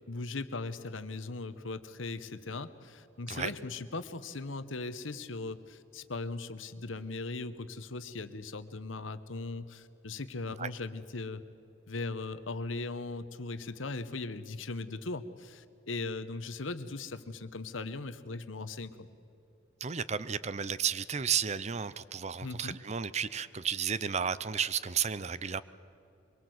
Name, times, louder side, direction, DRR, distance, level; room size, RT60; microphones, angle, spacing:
voice 1, 0.1-11.4 11.9-19.1 22.4-22.8, left 3 dB, 85° left, 12 dB, 1.1 m, -39 dB
voice 2, 19.8-25.6, right 7 dB, 35° right, 16 dB, 0.6 m, -33 dB
24.0 x 22.5 x 7.9 m, 2.7 s
head